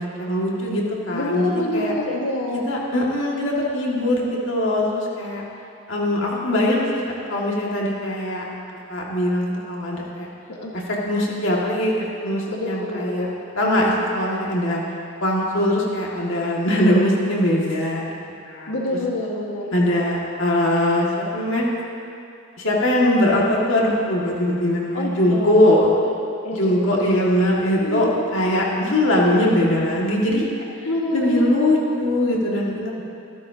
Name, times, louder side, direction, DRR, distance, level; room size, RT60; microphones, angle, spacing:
voice 1, 0.0-1.9 2.7-5.4 5.9-6.9 7.3-8.5 8.9-10.3 10.7-14.8 15.2-18.2 18.5-18.7 19.7-21.6 22.6-25.9 26.5-30.5 31.1-33.0, left 1 dB, 55° left, -3 dB, 2.1 m, -21 dB
voice 2, 1.1-2.7 10.5-10.7 12.5-13.4 18.7-19.8 24.9-25.9 26.4-27.1 27.8-28.1 30.8-31.6, left 1 dB, 85° left, -3 dB, 1.7 m, -26 dB
24.0 x 12.5 x 2.9 m, 2.7 s
head